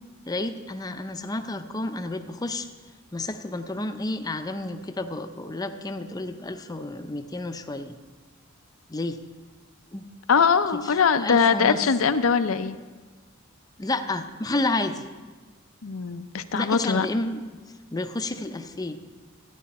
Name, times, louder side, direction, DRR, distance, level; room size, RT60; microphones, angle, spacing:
voice 1, 0.3-2.7 3.1-8.0 8.9-9.2 9.9-10.1 10.7-11.9 13.8-15.1 16.5-17.6 17.9-19.0, left 2 dB, 20° left, 8 dB, 0.6 m, -30 dB
voice 2, 10.3-12.8 15.8-17.1, left 6 dB, 80° left, 10 dB, 0.5 m, -22 dB
14.0 x 9.4 x 4.2 m, 1.3 s
head